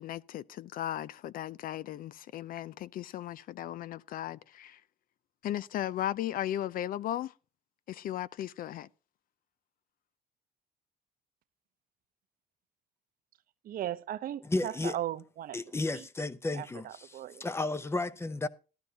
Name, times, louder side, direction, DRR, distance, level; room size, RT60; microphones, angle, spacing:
voice 1, 0.0-4.8 5.4-7.3 7.9-8.9, left 12 dB, 55° left, 0.5 m, -36 dB
voice 2, 13.7-15.6 16.6-16.7 17.1-17.4, right 12 dB, 60° right, 0.8 m, -36 dB
voice 3, 14.4-15.0 15.5-18.5, left 2 dB, 15° left, 0.7 m, -33 dB
13.5 x 12.5 x 2.8 m
cardioid pair, 110°, 17 cm